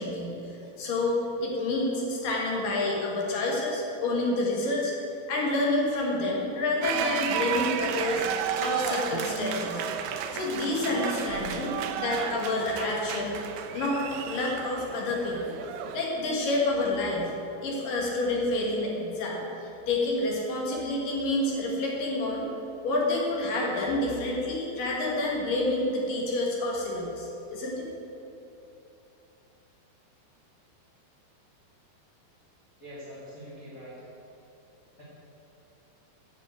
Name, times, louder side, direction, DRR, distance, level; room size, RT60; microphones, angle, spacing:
voice 1, 0.0-4.9 5.3-9.8 10.3-13.4 13.7-15.6 15.9-17.3 17.6-22.5 22.8-27.9, left 2 dB, 60° left, -2 dB, 3.3 m, -28 dB
sound 1, 6.8-16.1, right 8 dB, 85° right, 2.0 m, -33 dB
voice 2, 32.8-34.0, equal, 25° left, -9 dB, 2.3 m, -43 dB
10.5 x 6.8 x 8.2 m, 2.9 s
omnidirectional pair, 4.6 m